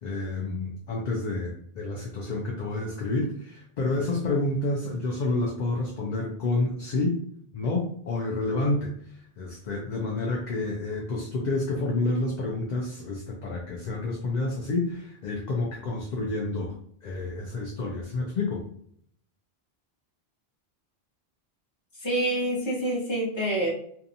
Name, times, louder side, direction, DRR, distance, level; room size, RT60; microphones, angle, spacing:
voice 1, 0.0-7.2 7.5-8.9 9.4-16.8 17.0-18.6, left 2 dB, 55° left, -1 dB, 0.5 m, -29 dB
voice 2, 22.0-23.7, right 1 dB, 30° left, -4 dB, 0.9 m, -27 dB
2.7 x 2.3 x 2.5 m, 0.64 s
omnidirectional pair, 1.1 m